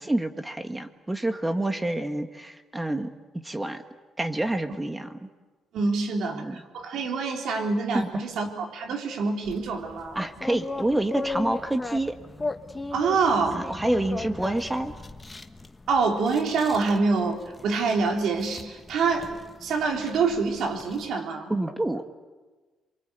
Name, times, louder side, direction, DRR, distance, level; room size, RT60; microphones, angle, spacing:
voice 1, 0.0-3.1 3.4-3.8 4.2-5.3 6.3-6.6 7.9-8.1 10.1-12.2 13.5-14.9 21.5-22.1, right 1 dB, 15° right, 7 dB, 1.7 m, -28 dB
voice 2, 5.7-10.2 12.9-13.6 15.9-21.5, right 4 dB, 75° right, 3 dB, 3.8 m, -26 dB
sound 1, 9.4-21.1, left 3 dB, 20° left, 1.3 m, -38 dB
28.0 x 24.0 x 8.3 m, 1.3 s
cardioid pair, 90°, 0 cm